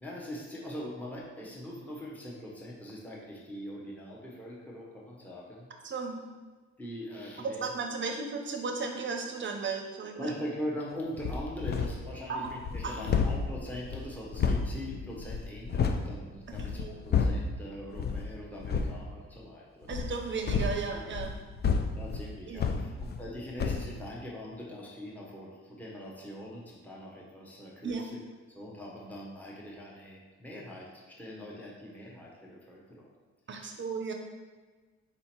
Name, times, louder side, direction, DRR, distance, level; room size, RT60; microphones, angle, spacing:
voice 1, 0.0-5.7 6.8-7.7 10.2-20.0 21.7-28.2 28.5-33.1 33.6-33.8, equal, 5° left, -4 dB, 0.9 m, -42 dB
voice 2, 5.8-6.2 7.4-10.3 12.3-12.5 12.8-13.0 16.7-17.0 19.9-21.3 22.5-22.7 27.8-28.0 33.5-34.1, right 4 dB, 40° right, 3 dB, 0.7 m, -35 dB
sound 1, 11.2-12.1 12.4-16.1 16.5-17.5 17.9-18.3 18.6-19.0 19.9-23.3 23.6-23.9, left 5 dB, 35° left, 0.4 m, -30 dB
4.2 x 2.7 x 4.4 m, 1.4 s
cardioid pair, 90°, 30 cm